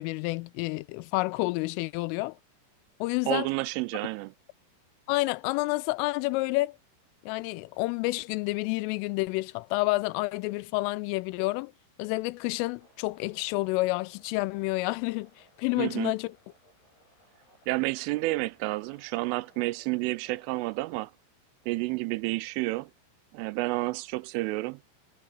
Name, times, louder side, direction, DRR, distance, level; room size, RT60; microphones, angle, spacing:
voice 1, 0.0-2.4 3.0-3.5 5.1-6.8 7.2-11.7 12.0-15.3 15.6-16.3, left 22 dB, 90° left, 3.2 m, -29 dB
voice 2, 3.3-4.3 15.8-16.1 17.7-21.1 21.7-22.9 23.3-24.8, right 21 dB, 85° right, 3.1 m, -30 dB
sound 1, 12.8-21.0, left 1 dB, 55° left, 9.3 m, -62 dB
omnidirectional pair, 5.7 m